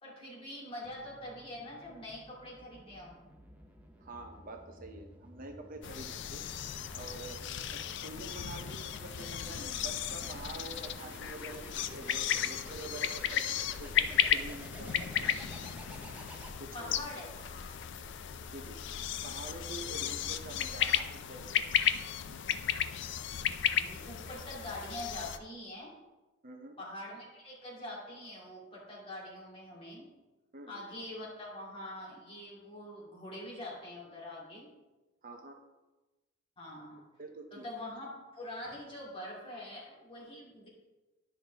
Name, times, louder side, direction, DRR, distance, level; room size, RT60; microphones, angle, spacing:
voice 1, 0.0-3.1 16.7-17.7 19.8-19.9 23.6-25.9 26.8-30.1 30.7-34.7 36.6-37.0 37.5-40.7, left 1 dB, 30° left, -5 dB, 2.4 m, -44 dB
sound 1, 0.8-16.9, equal, 5° right, 0.8 m, -52 dB
voice 2, 4.0-6.4 6.9-7.4 7.7-15.4 16.6-16.9 18.5-18.8 19.2-21.7 26.4-26.8 30.5-30.8 35.2-35.6 37.2-37.6, right 2 dB, 45° right, 4 dB, 0.7 m, -47 dB
sound 2, 5.8-25.4, left 10 dB, 60° left, 0.4 m, -34 dB
10.0 x 5.9 x 3.4 m, 1.1 s
head